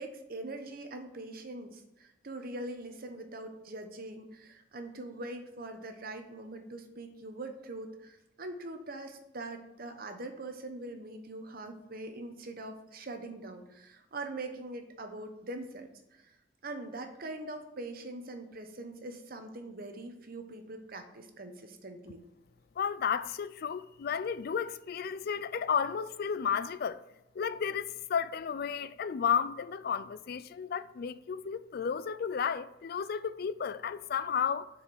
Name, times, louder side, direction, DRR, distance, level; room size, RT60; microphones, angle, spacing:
voice 1, 0.0-16.4 16.6-22.2, right 2 dB, 55° right, 1.0 m, -43 dB
voice 2, 22.8-27.0 27.4-34.7, left 7 dB, 55° left, 0.4 m, -33 dB
6.6 x 4.9 x 6.3 m
head